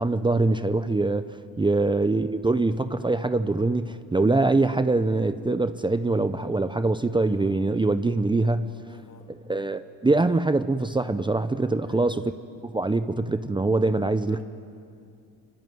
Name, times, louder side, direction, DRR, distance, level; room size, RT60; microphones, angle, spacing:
voice 1, 0.0-8.7 9.5-12.2 12.6-14.4, right 2 dB, 15° right, 11 dB, 0.8 m, -23 dB
voice 2, 1.5-2.0 8.9-9.4 11.8-12.1 14.3-14.4, left 6 dB, 55° left, 5 dB, 5.3 m, -52 dB
25.0 x 23.0 x 9.5 m, 2.4 s
supercardioid pair, 80°, 37 cm